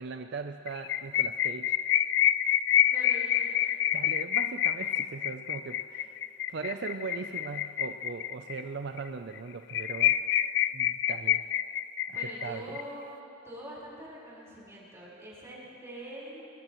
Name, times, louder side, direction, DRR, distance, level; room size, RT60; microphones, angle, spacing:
voice 1, 0.0-1.8 3.9-6.2 6.5-10.2 10.7-11.4 12.1-12.8, right 4 dB, 60° right, 8 dB, 0.5 m, -39 dB
sound 1, 0.7-8.6 9.0-9.1 9.4-9.5 9.7-12.8, left 11 dB, 60° left, 0.3 m, -27 dB
voice 2, 2.8-3.7 12.1-13.2 13.4-16.4, right 1 dB, 15° right, -7 dB, 4.4 m, -44 dB
21.5 x 19.5 x 3.1 m, 2.7 s
head